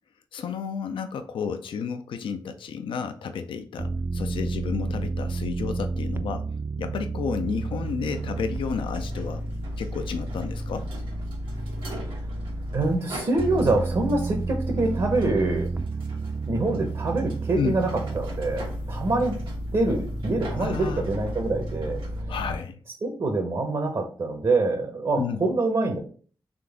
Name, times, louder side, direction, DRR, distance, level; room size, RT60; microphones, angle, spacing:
voice 1, 0.3-6.5 6.8-9.4 9.8-10.9 17.6-17.8 20.6-21.1 22.3-22.8 25.2-25.5, left 6 dB, 80° left, 8 dB, 0.4 m, -31 dB
sound 1, 3.8-13.0 13.4-22.6, right 2 dB, 30° right, 0.4 m, -31 dB
sound 2, 7.4-22.2, right 1 dB, 85° right, 1.2 m, -45 dB
voice 2, 12.7-15.7 16.5-17.9 18.1-19.4 19.7-22.3 23.0-26.0, right 2 dB, 55° right, 2 dB, 0.9 m, -25 dB
3.8 x 3.3 x 3.5 m, 0.43 s
cardioid pair, 50°, 9 cm